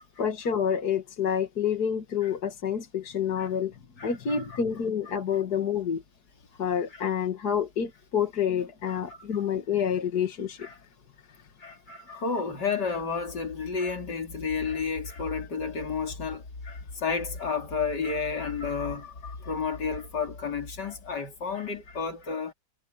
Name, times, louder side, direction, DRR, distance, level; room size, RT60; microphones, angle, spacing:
voice 1, 0.2-3.8 4.0-6.0 6.6-10.7, left 8 dB, 70° left, 2.4 m, -28 dB
voice 2, 4.0-4.6 6.9-7.0 8.9-9.4 10.6-10.8 11.6-22.5, left 5 dB, 85° left, 3.7 m, -32 dB
omnidirectional pair, 1.8 m